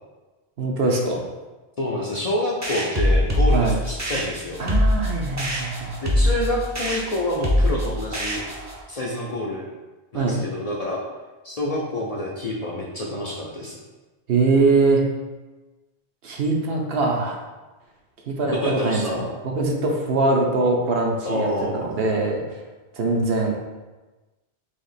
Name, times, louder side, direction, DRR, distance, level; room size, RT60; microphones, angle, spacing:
voice 1, 0.6-1.2 3.5-3.8 4.6-5.9 10.1-10.4 14.3-15.1 16.2-17.4 18.3-19.2 19.4-21.5 21.8-22.4 23.0-23.5, right 3 dB, 70° right, 0 dB, 0.9 m, -22 dB
voice 2, 1.8-4.6 6.0-8.4 8.9-9.7 10.1-11.0 11.4-13.8 18.4-19.3 21.3-22.0, left 1 dB, 50° left, -3 dB, 0.5 m, -27 dB
sound 1, 2.6-8.8, left 1 dB, 20° right, 0.4 m, -23 dB
3.3 x 2.8 x 4.1 m, 1.2 s
omnidirectional pair, 1.1 m